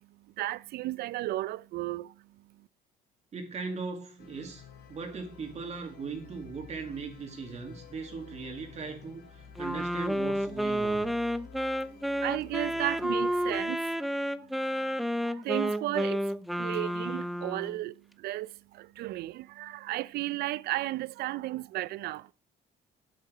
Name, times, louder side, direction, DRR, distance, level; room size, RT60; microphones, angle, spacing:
voice 1, 0.0-2.7 11.8-22.3, right 16 dB, 70° right, 0.4 m, -35 dB
voice 2, 3.3-4.6 4.9-11.1, right 4 dB, 40° right, 2.0 m, -39 dB
sound 1, 4.2-13.6, left 6 dB, 70° left, 2.7 m, -52 dB
Wind instrument woodwind instrument, 9.6-17.8, equal, ahead, 0.5 m, -31 dB
8.1 x 7.3 x 4.8 m
cardioid pair, 110°, 17 cm